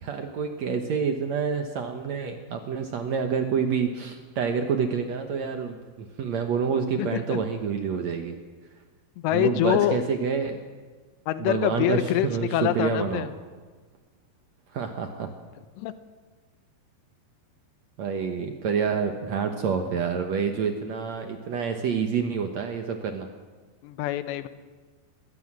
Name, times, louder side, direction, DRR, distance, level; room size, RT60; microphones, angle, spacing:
voice 1, 0.0-8.4 9.3-10.6 11.4-13.3 14.7-15.3 18.0-23.3, right 6 dB, 70° right, 5 dB, 1.6 m, -28 dB
voice 2, 7.0-7.4 9.2-10.0 11.3-13.3 15.8-15.9 23.8-24.5, left 13 dB, 90° left, 12 dB, 3.1 m, -25 dB
21.5 x 16.5 x 7.5 m, 1.4 s
omnidirectional pair, 4.9 m